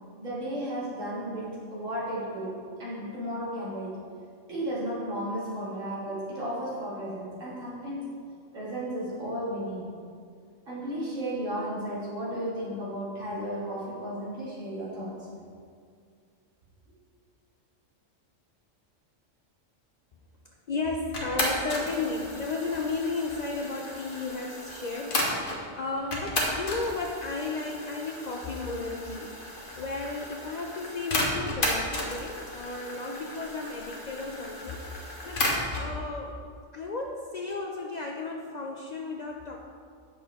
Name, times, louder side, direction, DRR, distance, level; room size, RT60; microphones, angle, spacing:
voice 1, 0.2-4.0 4.5-8.2 8.5-10.0 10.7-15.3, right 1 dB, 75° right, -8 dB, 2.4 m, -34 dB
voice 2, 20.7-36.4 36.7-39.6, left 3 dB, 90° left, 0 dB, 0.3 m, -34 dB
sound 1, 21.1-25.6 26.1-35.9, left 1 dB, 45° left, 1.2 m, -33 dB
8.0 x 6.3 x 3.5 m, 2.2 s
omnidirectional pair, 1.3 m